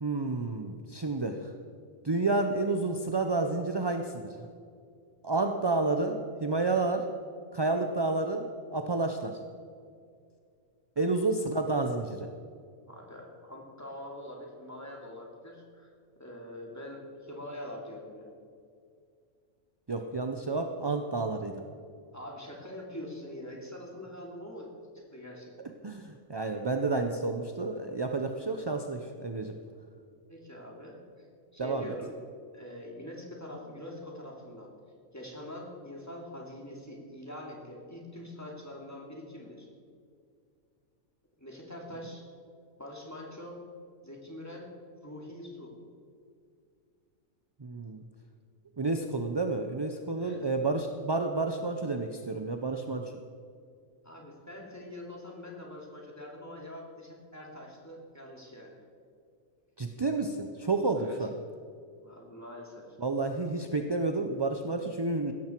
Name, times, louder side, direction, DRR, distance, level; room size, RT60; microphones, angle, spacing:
voice 1, 0.0-1.5 2.0-4.5 5.2-7.1 7.5-9.4 11.0-12.3 19.9-21.5 25.8-29.5 31.6-31.9 47.6-48.0 48.8-53.1 59.8-61.3 63.0-65.3, right 3 dB, 30° right, 5 dB, 0.5 m, -30 dB
voice 2, 12.9-18.3 22.1-25.7 30.3-31.2 31.5-32.1 32.5-34.7 35.1-39.7 41.4-42.2 42.8-43.6 44.0-44.7 45.0-45.7 50.1-50.5 54.0-58.8 61.0-61.3 62.0-63.0, left 1 dB, 10° left, -1 dB, 2.7 m, -44 dB
16.5 x 13.5 x 4.6 m, 2.3 s
omnidirectional pair, 1.4 m